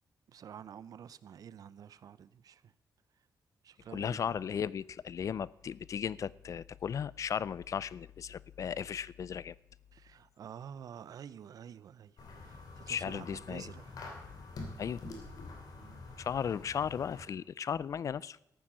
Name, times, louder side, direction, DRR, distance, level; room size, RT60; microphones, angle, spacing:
voice 1, 0.3-2.7 3.6-4.3 9.9-14.2 15.7-16.0, right 8 dB, 65° right, 0.5 m, -49 dB
voice 2, 3.9-9.6 12.9-13.7 14.8-15.0 16.2-18.4, left 8 dB, 50° left, 0.4 m, -36 dB
sound 1, 12.2-17.2, left 3 dB, 65° left, 2.9 m, -47 dB
14.0 x 8.9 x 6.2 m
cardioid pair, 105°, 7 cm